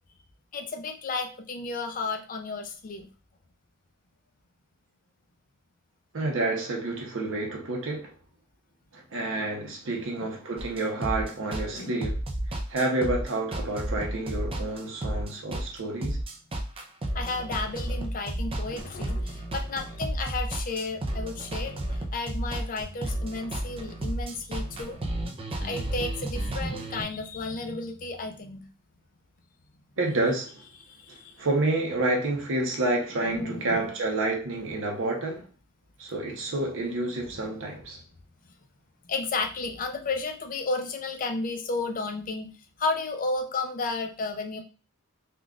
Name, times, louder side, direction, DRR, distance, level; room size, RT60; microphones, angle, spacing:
voice 1, 0.5-3.1 11.7-12.0 17.1-25.0 25.6-28.6 30.8-31.4 33.2-33.9 34.9-35.2 39.1-42.5 42.8-44.6, left 3 dB, 40° left, 0.5 m, -33 dB
voice 2, 6.1-8.1 8.9-12.2 12.7-16.2 30.0-30.6 31.1-35.5 36.0-38.0, right 2 dB, 60° right, 0.9 m, -29 dB
sound 1, 10.6-27.0, right 1 dB, 25° right, 0.4 m, -32 dB
3.6 x 2.4 x 2.4 m
head